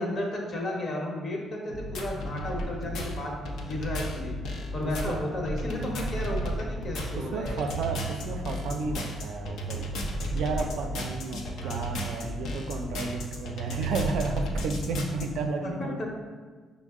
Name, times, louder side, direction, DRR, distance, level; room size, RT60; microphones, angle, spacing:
voice 1, 0.0-4.4 4.7-7.8 11.6-11.8 15.6-16.1, left 1 dB, 50° left, -1 dB, 0.9 m, -33 dB
sound 1, 1.7-15.3, right 1 dB, 80° left, 0.5 m, -33 dB
voice 2, 4.8-5.2 7.1-10.1 10.3-16.1, right 3 dB, 80° right, 4 dB, 0.4 m, -32 dB
5.1 x 2.0 x 3.5 m, 1.4 s
cardioid pair, 90°, 0 cm